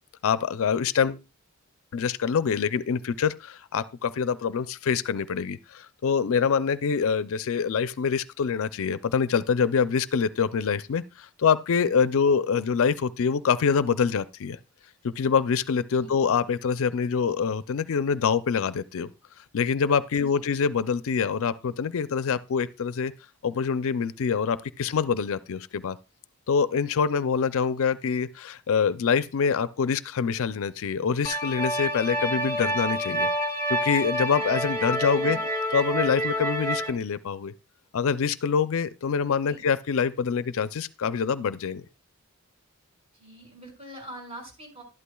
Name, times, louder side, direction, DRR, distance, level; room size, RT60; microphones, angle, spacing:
voice 1, 0.2-1.2 1.9-14.6 15.0-19.1 19.5-23.1 23.4-26.0 26.5-33.3 33.7-35.4 35.7-37.5 37.9-41.8, left 6 dB, 65° left, 0.4 m, -25 dB
sound 1, 31.2-36.9, right 1 dB, 15° left, 1.7 m, -28 dB
voice 2, 35.1-35.4 39.5-39.6 43.1-44.8, right 1 dB, 30° right, 5.8 m, -44 dB
12.0 x 11.5 x 2.3 m
head